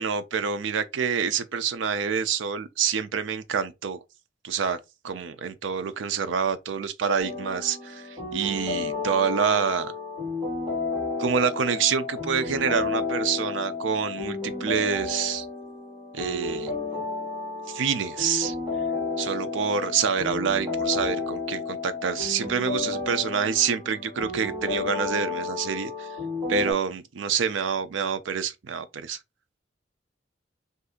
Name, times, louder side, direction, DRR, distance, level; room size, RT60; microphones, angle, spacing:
voice 1, 0.0-4.0 4.4-4.8 5.0-9.9 11.2-15.5 16.1-16.7 17.7-18.6 19.2-26.1 26.5-29.2, right 6 dB, 85° right, 0.4 m, -27 dB
sound 1, 7.2-26.7, left 3 dB, 25° right, 1.8 m, -32 dB
2.7 x 2.4 x 3.6 m
head